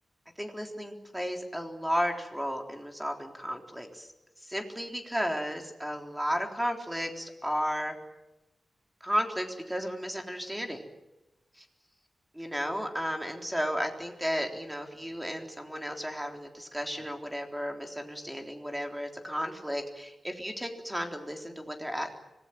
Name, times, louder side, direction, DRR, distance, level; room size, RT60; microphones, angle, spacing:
voice 1, 0.4-4.1 4.4-8.0 9.0-10.8 11.6-11.7 12.3-22.1, equal, 5° right, 3 dB, 3.6 m, -33 dB
25.5 x 20.0 x 9.3 m, 1.0 s
wide cardioid pair, 120°, 0 cm